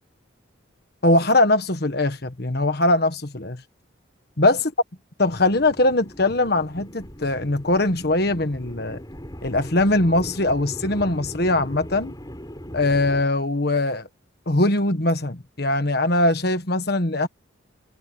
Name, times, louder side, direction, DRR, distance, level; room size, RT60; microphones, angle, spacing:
voice 1, 1.0-3.6 4.4-4.7 5.2-9.0 9.4-12.1 12.7-14.1 14.5-17.3, left 2 dB, 50° left, 1.5 m, -21 dB
sound 1, 5.2-13.2, equal, 20° left, 6.1 m, -39 dB
head